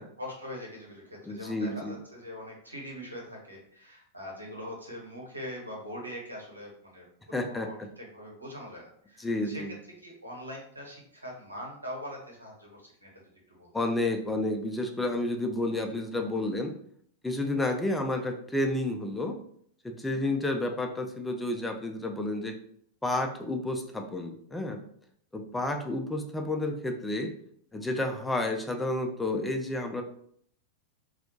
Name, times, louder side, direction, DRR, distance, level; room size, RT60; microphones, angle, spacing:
voice 1, 0.2-13.1 13.5-13.7, equal, 80° right, -1 dB, 1.1 m, -42 dB
voice 2, 1.2-1.9 7.3-7.9 9.2-9.7 13.7-16.7 17.2-19.4 19.8-22.5 23.0-24.8 25.3-27.3 27.7-30.0, left 2 dB, 10° left, 4 dB, 0.4 m, -30 dB
4.1 x 2.4 x 2.8 m, 0.64 s
figure-of-eight pair, 90°, 0 cm